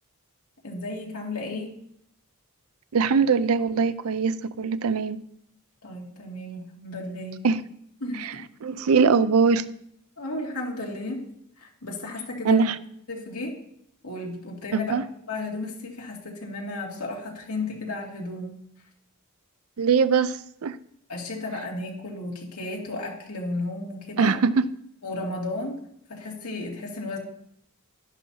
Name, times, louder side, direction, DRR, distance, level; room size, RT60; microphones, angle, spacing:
voice 1, 0.6-1.7 5.8-7.4 8.0-8.4 10.2-11.2 11.6-12.7 13.1-13.5 14.0-14.9 15.3-18.6 21.1-24.3 25.0-25.8 26.1-27.2, left 2 dB, 85° left, -1 dB, 2.5 m, -33 dB
voice 2, 2.9-5.2 7.4-7.6 8.2-8.3 8.6-9.6 12.4-12.8 14.7-15.0 19.8-20.8 24.2-24.7, right 5 dB, 70° right, 15 dB, 0.5 m, -22 dB
12.0 x 11.0 x 2.8 m, 0.73 s
head